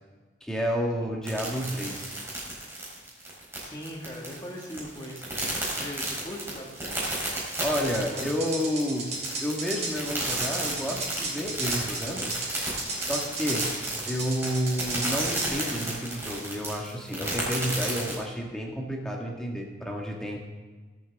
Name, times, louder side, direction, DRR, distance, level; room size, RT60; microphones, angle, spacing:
voice 1, 0.4-2.1 7.6-9.1 9.4-12.3 12.9-13.7 14.1-20.5, equal, 5° left, -1 dB, 1.6 m, -30 dB
sound 1, 1.2-18.2, right 1 dB, 15° right, 4.0 m, -33 dB
voice 2, 3.6-7.0 7.9-8.3, equal, 20° left, -2 dB, 1.8 m, -40 dB
sound 2, 7.9-15.5, right 3 dB, 40° right, 3.6 m, -34 dB
20.5 x 7.3 x 3.6 m, 1.3 s
head